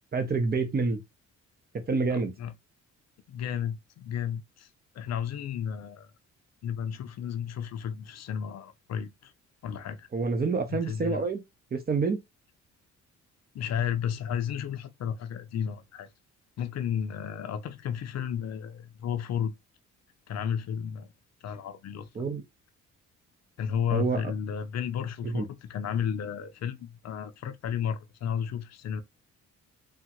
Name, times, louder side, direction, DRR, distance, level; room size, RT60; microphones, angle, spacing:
voice 1, 0.1-1.0 1.9-2.3 10.1-11.4 11.7-12.2 22.1-22.4 23.9-24.2 25.2-25.5, right 4 dB, 30° right, 0.8 m, -27 dB
voice 2, 2.1-2.5 3.3-4.7 4.9-6.1 6.6-9.3 9.6-10.1 10.7-11.3 13.5-16.1 16.6-19.5 20.3-21.1 21.4-22.1 23.6-29.0, left 8 dB, 60° left, 0.5 m, -33 dB
3.5 x 2.2 x 2.9 m
cardioid pair, 90°, 30 cm